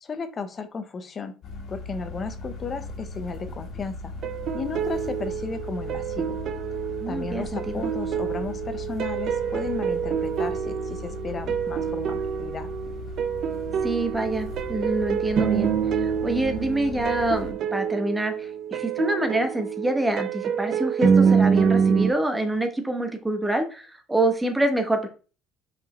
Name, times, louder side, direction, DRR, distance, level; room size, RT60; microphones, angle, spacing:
voice 1, 0.0-1.3 1.7-4.1 4.5-6.4 7.1-12.7, left 4 dB, 30° left, 10 dB, 0.8 m, -34 dB
sound 1, 1.4-17.5, left 2 dB, 45° left, 1.9 m, -38 dB
sound 2, 4.2-22.1, right 7 dB, 50° right, 0.8 m, -26 dB
voice 2, 7.0-7.8 13.8-15.7 16.0-25.1, right 1 dB, 10° right, 6 dB, 1.2 m, -26 dB
5.5 x 5.2 x 4.3 m, 0.36 s
cardioid pair, 135°, 0 cm